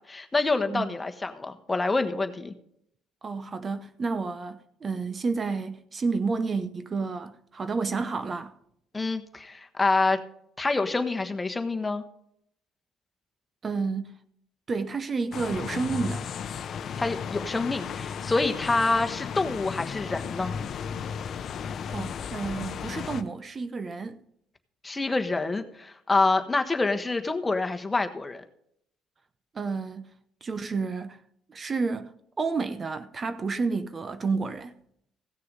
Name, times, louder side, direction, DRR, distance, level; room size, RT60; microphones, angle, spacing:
voice 1, 0.0-2.5 8.9-10.2 10.6-12.0 17.0-20.5 24.8-28.4, left 3 dB, 20° left, 1.3 m, -27 dB
voice 2, 3.2-8.5 13.6-14.1 14.7-16.3 21.9-24.2 29.5-30.1 30.4-31.2 31.5-34.8, right 4 dB, 35° right, 0.8 m, -30 dB
sound 1, 15.3-23.2, left 7 dB, 55° left, 0.7 m, -35 dB
16.0 x 6.6 x 5.5 m
cardioid pair, 90°, 0 cm